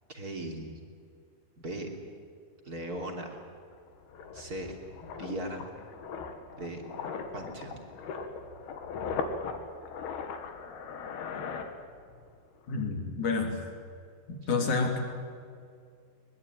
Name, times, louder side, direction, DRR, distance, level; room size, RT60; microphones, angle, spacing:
voice 1, 0.1-0.8 1.6-1.9 2.6-3.4 4.3-5.7 6.5-6.8 7.3-7.8, right 1 dB, 25° right, 2 dB, 3.0 m, -38 dB
sound 1, 2.8-2.9 3.2-12.3 12.6-12.8, left 5 dB, 80° left, 3.8 m, -39 dB
voice 2, 12.7-13.6 14.3-15.0, left 4 dB, 50° left, 3 dB, 4.4 m, -29 dB
22.5 x 21.5 x 9.4 m, 2.3 s
omnidirectional pair, 4.5 m